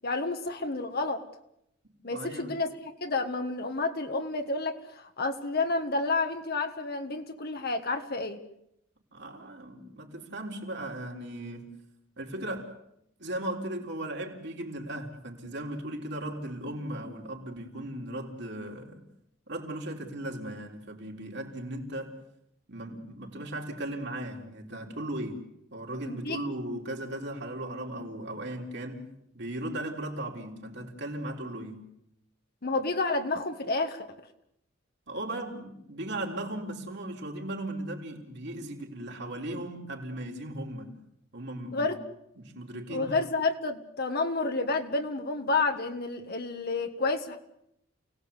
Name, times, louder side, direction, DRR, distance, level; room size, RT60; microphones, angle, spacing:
voice 1, 0.0-1.2 2.0-8.4 26.0-26.4 32.6-34.1 41.7-42.0 42.9-47.4, left 3 dB, 50° left, 1.5 m, -30 dB
voice 2, 2.1-2.5 9.1-11.7 12.2-12.7 13.2-19.0 19.5-22.1 22.7-25.5 25.7-29.0 29.3-31.9 35.1-41.0 41.3-41.9 42.4-43.2, right 1 dB, 60° right, 3.9 m, -37 dB
29.0 x 18.5 x 8.3 m
head